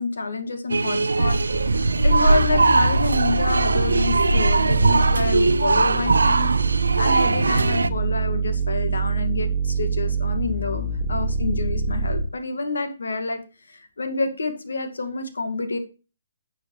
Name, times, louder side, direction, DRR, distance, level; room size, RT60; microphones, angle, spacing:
voice 1, 0.0-1.4 1.7-6.5 7.0-13.4 13.7-15.8, left 3 dB, 65° left, 7 dB, 2.0 m, -28 dB
sound 1, 0.7-7.9, right 3 dB, 70° right, 0.6 m, -20 dB
sound 2, 1.5-12.3, right 3 dB, 10° right, 2.7 m, -25 dB
11.5 x 7.5 x 3.2 m, 0.31 s
figure-of-eight pair, 130°, 0 cm